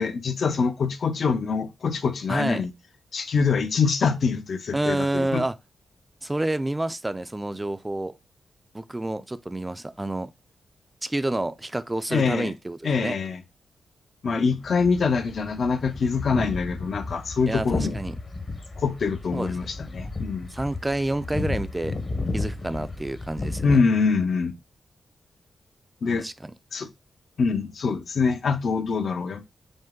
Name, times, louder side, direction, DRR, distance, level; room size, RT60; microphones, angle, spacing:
voice 1, 0.0-2.7 3.1-5.4 12.1-12.5 12.8-13.4 14.2-17.9 18.8-20.5 23.6-24.5 26.0-26.2 26.7-26.9 27.4-29.4, left 5 dB, 65° left, 0.6 m, -24 dB
voice 2, 2.3-2.6 4.7-5.5 6.2-8.1 8.7-10.3 11.0-13.2 17.5-18.1 19.3-19.7 20.5-22.0 22.3-23.8 26.2-26.5, right 1 dB, 15° right, 0.4 m, -28 dB
sound 1, 14.6-23.8, left 3 dB, 40° left, 0.9 m, -33 dB
5.2 x 2.1 x 3.7 m
cardioid pair, 75°, 0 cm